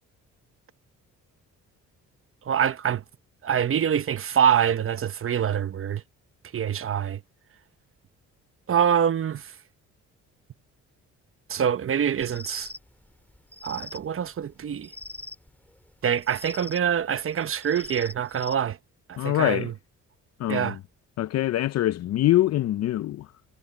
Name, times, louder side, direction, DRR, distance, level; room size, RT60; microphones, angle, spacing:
voice 1, 2.5-3.0 3.4-6.0 6.5-7.2 8.7-9.4 11.5-12.7 13.6-14.9 16.0-18.8 19.1-19.7 20.5-20.8, right 8 dB, 45° right, 1.0 m, -25 dB
sound 1, 12.0-18.6, left 2 dB, 5° left, 3.0 m, -43 dB
voice 2, 19.2-19.7 20.4-20.8 21.2-23.3, left 14 dB, 60° left, 0.5 m, -24 dB
cardioid pair, 90°, 30 cm